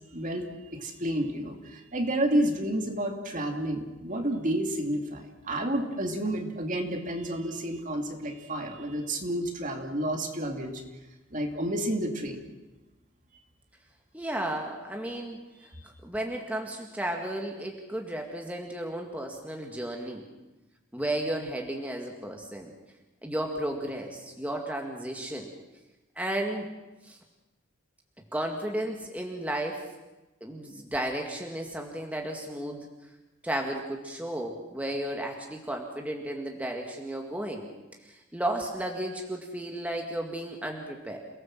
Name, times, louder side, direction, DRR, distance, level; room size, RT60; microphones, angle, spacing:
voice 1, 0.1-10.8 11.3-12.5 15.7-15.8, right 1 dB, 40° right, 3 dB, 2.6 m, -30 dB
voice 2, 14.1-15.4 16.0-20.2 20.9-22.7 23.2-25.5 26.2-26.7 27.0-27.2 28.3-29.8 30.4-32.9 33.4-37.7 38.0-41.2, right 1 dB, 5° right, 1 dB, 2.0 m, -33 dB
28.5 x 18.0 x 7.6 m, 1.1 s
head